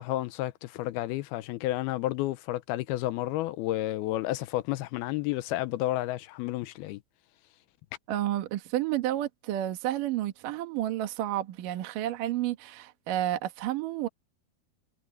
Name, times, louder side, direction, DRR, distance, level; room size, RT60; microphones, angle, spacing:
voice 1, 0.0-7.0, left 16 dB, 85° left, 2.6 m, -31 dB
voice 2, 8.1-14.1, right 13 dB, 65° right, 2.8 m, -30 dB
omnidirectional pair, 4.4 m